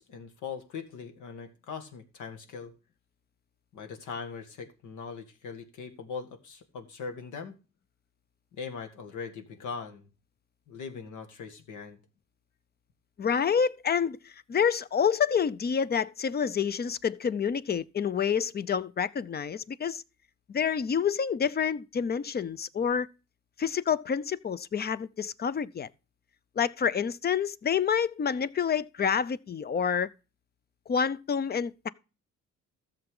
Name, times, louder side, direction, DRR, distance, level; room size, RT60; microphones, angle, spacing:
voice 1, 0.0-2.7 3.7-7.6 8.5-10.1 10.7-12.0, left 5 dB, 80° left, 2.0 m, -40 dB
voice 2, 13.2-20.0 20.5-23.1 23.6-25.9 26.6-30.1 30.9-31.9, left 7 dB, 35° left, 0.6 m, -28 dB
13.5 x 7.2 x 3.7 m
cardioid pair, 90°, 30 cm